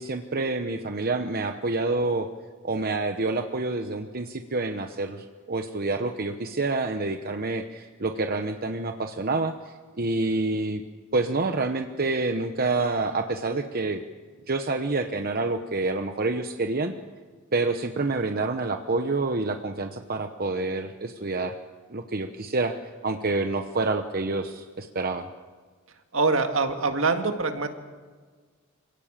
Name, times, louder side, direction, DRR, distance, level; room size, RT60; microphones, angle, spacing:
voice 1, 0.0-2.3 2.6-9.5 10.0-10.8 11.1-14.0 14.5-16.9 17.5-21.5 21.9-22.7 23.0-25.3, right 3 dB, 45° right, 6 dB, 1.0 m, -27 dB
voice 2, 26.1-27.7, right 3 dB, 70° right, 5 dB, 2.0 m, -24 dB
26.5 x 17.5 x 7.5 m, 1.5 s
head